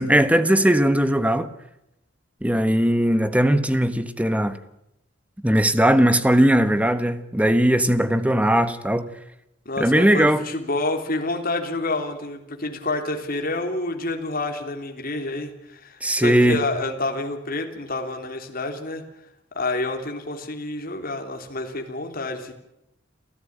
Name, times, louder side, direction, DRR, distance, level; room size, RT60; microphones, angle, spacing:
voice 1, 0.0-1.5 2.4-4.6 5.4-9.1 9.8-10.4 16.0-16.6, right 1 dB, 5° right, 1.3 m, -19 dB
voice 2, 9.6-19.0 19.5-22.5, left 2 dB, 50° left, 3.2 m, -28 dB
28.5 x 14.0 x 8.8 m
head